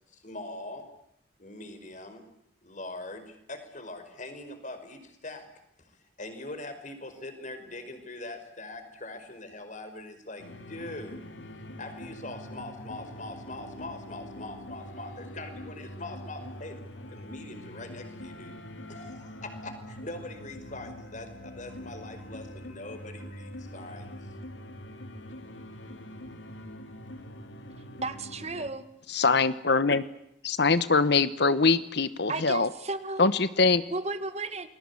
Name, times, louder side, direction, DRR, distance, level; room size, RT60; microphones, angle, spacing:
voice 1, 0.1-0.9 1.4-2.3 2.6-5.5 5.8-11.2 11.8-16.8 17.1-18.5 18.9-24.2, left 2 dB, 40° left, 8 dB, 5.3 m, -42 dB
sound 1, 10.4-28.7, left 1 dB, 90° left, 3.0 m, -44 dB
voice 2, 28.0-28.9 32.3-33.3 33.9-34.7, right 3 dB, 35° right, 11 dB, 1.9 m, -33 dB
voice 3, 29.1-30.0 30.4-32.7 33.2-33.8, left 4 dB, 65° left, 14 dB, 1.0 m, -23 dB
29.5 x 21.5 x 8.5 m, 0.75 s
head